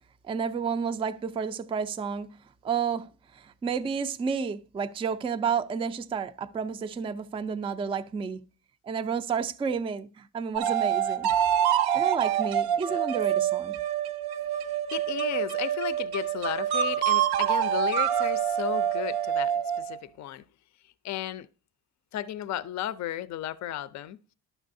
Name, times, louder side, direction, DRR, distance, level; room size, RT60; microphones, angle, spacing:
voice 1, 0.2-8.4 8.8-11.3 11.9-13.8, right 6 dB, 15° right, 0.3 m, -31 dB
sound 1, 10.5-20.0, right 10 dB, 70° right, 0.6 m, -26 dB
voice 2, 14.9-20.4 21.0-21.5 22.1-24.2, left 12 dB, 45° left, 0.5 m, -34 dB
11.0 x 6.0 x 2.6 m
cardioid pair, 95°, 40 cm